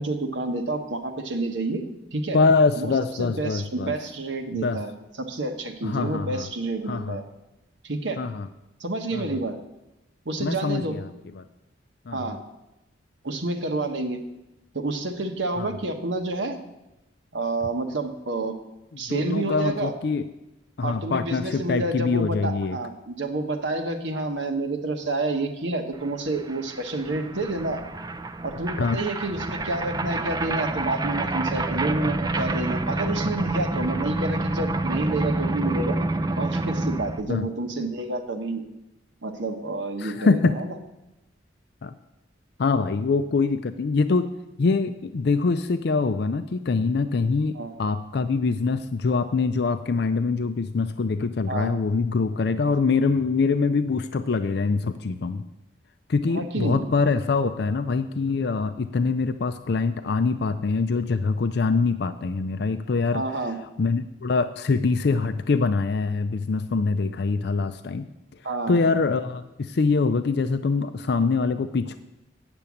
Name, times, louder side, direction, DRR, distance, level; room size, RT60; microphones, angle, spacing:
voice 1, 0.0-1.8 2.1-2.4 2.8-2.9 3.2-4.9 5.2-7.2 7.8-8.2 8.8-9.6 10.2-11.0 12.1-12.4 13.2-14.2 14.7-16.6 17.3-18.5 19.0-19.9 20.8-27.8 28.4-36.0 36.4-38.6 39.2-40.7 47.5-47.7 51.5-51.7 56.3-56.8 63.1-63.6 68.4-68.8, right 2 dB, 80° right, 5 dB, 1.2 m, -29 dB
voice 2, 2.3-3.9 4.5-4.8 5.8-6.5 6.9-7.2 8.2-8.5 9.1-9.4 10.4-11.1 11.4-11.5 12.1-12.4 15.6-15.7 19.1-20.2 20.8-22.8 28.8-29.0 37.3-37.5 40.0-40.5 41.8-41.9 42.6-44.3 44.6-55.4 56.1-63.2 63.8-68.1 68.7-72.0, left 4 dB, 60° left, 10 dB, 0.4 m, -24 dB
sound 1, 26.1-26.2 26.3-37.2, right 2 dB, 20° right, 0.4 m, -28 dB
9.1 x 6.8 x 8.4 m, 0.96 s
head